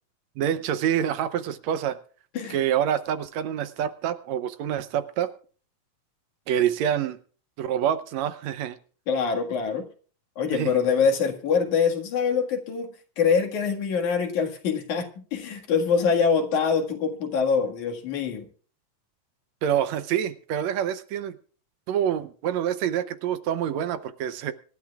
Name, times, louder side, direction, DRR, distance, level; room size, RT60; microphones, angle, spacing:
voice 1, 0.4-2.0 2.5-5.3 6.5-7.2 7.6-8.8 10.5-10.8 19.6-21.4 21.9-24.5, right 10 dB, 75° right, 12 dB, 2.0 m, -26 dB
voice 2, 9.1-9.9 10.4-18.5, left 6 dB, 80° left, 3 dB, 3.3 m, -24 dB
25.0 x 12.0 x 2.4 m, 0.41 s
omnidirectional pair, 3.3 m